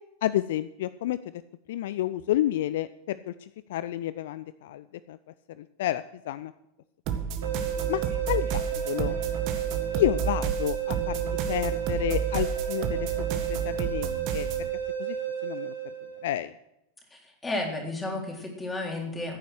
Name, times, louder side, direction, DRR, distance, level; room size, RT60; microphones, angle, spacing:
voice 1, 0.2-1.4 1.7-5.2 5.6-6.5 7.9-9.2 9.9-14.5 15.0-15.2 15.4-15.7 16.2-16.5, left 13 dB, 55° left, 16 dB, 0.4 m, -30 dB
sound 1, 7.1-14.7, right 7 dB, 40° right, 1.7 m, -31 dB
sound 2, 7.4-16.4, right 9 dB, 70° right, 2.6 m, -32 dB
voice 2, 17.1-19.4, left 2 dB, 10° left, 1 dB, 3.7 m, -33 dB
16.0 x 9.3 x 6.4 m, 0.87 s
figure-of-eight pair, 90°, 0 cm